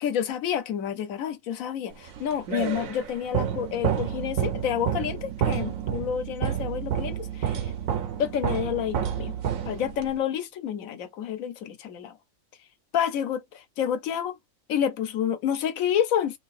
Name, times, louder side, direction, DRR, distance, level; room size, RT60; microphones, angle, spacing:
voice 1, 0.0-7.7 8.2-9.3 9.6-12.2 12.9-14.4 14.7-16.4, left 9 dB, 85° left, 1.1 m, -29 dB
sound 1, 2.1-10.2, right 9 dB, 80° right, 1.2 m, -29 dB
3.0 x 2.7 x 4.1 m
omnidirectional pair, 1.4 m